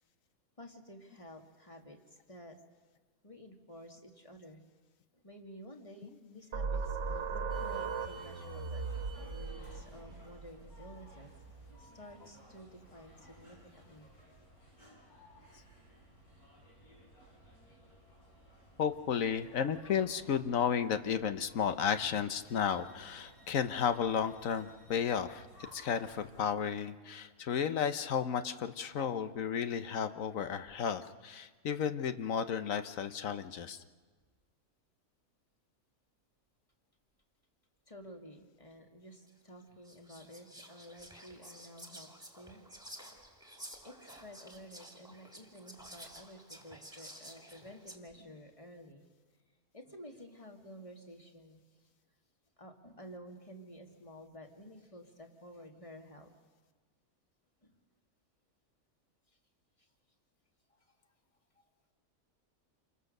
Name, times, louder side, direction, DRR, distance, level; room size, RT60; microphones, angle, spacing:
voice 1, 0.6-2.6 3.2-4.6 5.1-8.9 9.2-11.3 11.8-14.1 37.9-42.6 43.8-49.0 49.7-51.6 52.6-56.3 57.6-57.7 59.8-59.9 60.7-61.0 61.5-61.7, equal, 20° left, 3 dB, 2.3 m, -52 dB
sound 1, 6.5-11.8, right 5 dB, 55° right, 1.4 m, -38 dB
sound 2, 7.5-26.4, equal, 85° left, 6.5 m, -58 dB
voice 2, 18.8-25.5 25.7-33.8, left 7 dB, 65° left, 11 dB, 1.3 m, -33 dB
Whispering, 39.3-39.4 39.8-48.0, equal, 5° right, 2.4 m, -52 dB
28.0 x 22.5 x 6.6 m, 1.4 s
omnidirectional pair, 1.5 m